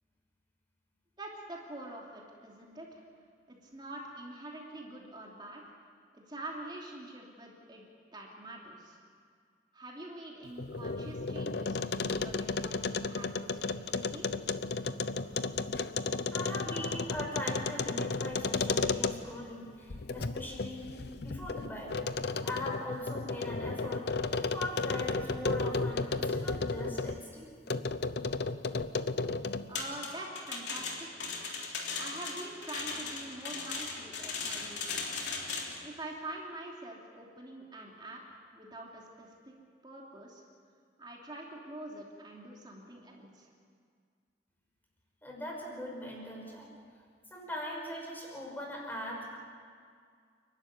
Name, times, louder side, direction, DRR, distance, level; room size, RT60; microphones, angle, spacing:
voice 1, 1.2-3.0 3.5-5.6 6.1-7.8 8.1-9.0 9.7-14.3 29.7-31.3 31.9-35.2 35.8-39.5 39.8-40.4 41.0-43.5, right 1 dB, 25° right, -2 dB, 2.9 m, -45 dB
sound 1, 10.5-19.4 19.9-27.2 27.7-29.8, left 3 dB, 65° left, 0.7 m, -33 dB
voice 2, 16.3-22.0 22.4-24.1 24.4-27.4 45.2-46.7 47.3-49.4, left 1 dB, 10° left, -1 dB, 5.3 m, -40 dB
sound 2, 29.8-35.8, left 4 dB, 80° left, 3.3 m, -38 dB
29.5 x 12.0 x 9.6 m, 2.1 s
head